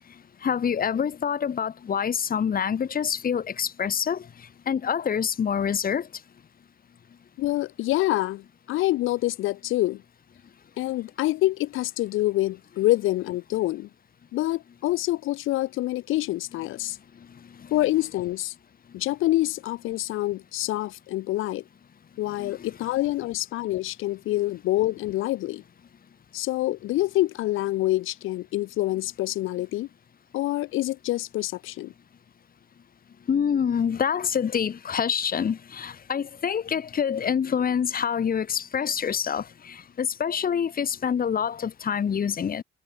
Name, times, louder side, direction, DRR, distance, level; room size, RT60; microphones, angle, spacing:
voice 1, 0.4-4.3 4.7-6.1 22.4-22.6 33.3-42.6, left 7 dB, 45° left, 2.4 m, -26 dB
voice 2, 7.4-10.0 10.8-13.9 14.3-17.0 17.7-18.5 18.9-21.6 22.2-25.6 26.3-29.9 30.3-31.9, left 16 dB, 90° left, 1.7 m, -26 dB
cardioid pair, 90°, 20 cm